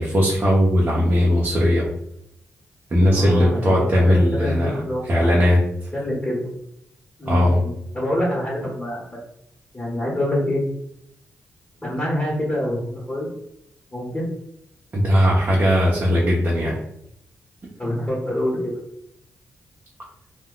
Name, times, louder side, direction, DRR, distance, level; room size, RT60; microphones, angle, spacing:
voice 1, 0.0-1.9 2.9-4.7 5.1-5.6 7.2-7.6 14.9-16.8, equal, 40° right, -5 dB, 0.7 m, -18 dB
voice 2, 3.1-5.6 5.9-6.5 7.2-9.2 9.7-10.6 11.8-13.3 13.9-14.3 17.8-18.7, left 1 dB, 25° left, -5 dB, 1.2 m, -26 dB
2.3 x 2.2 x 3.7 m, 0.76 s
cardioid pair, 55°, 5 cm